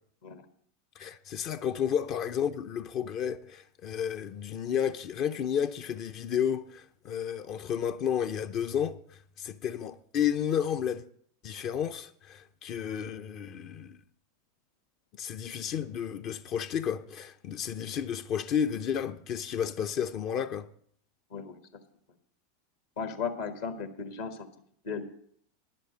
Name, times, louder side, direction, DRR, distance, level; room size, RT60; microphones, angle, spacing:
voice 1, 1.0-9.0 9.4-11.0 11.4-14.0 15.2-20.7, left 8 dB, 45° left, 0.5 m, -32 dB
voice 2, 23.0-24.5 24.8-25.0, left 5 dB, 70° left, 1.4 m, -35 dB
10.0 x 7.5 x 6.6 m
hypercardioid pair, 90°, 0 cm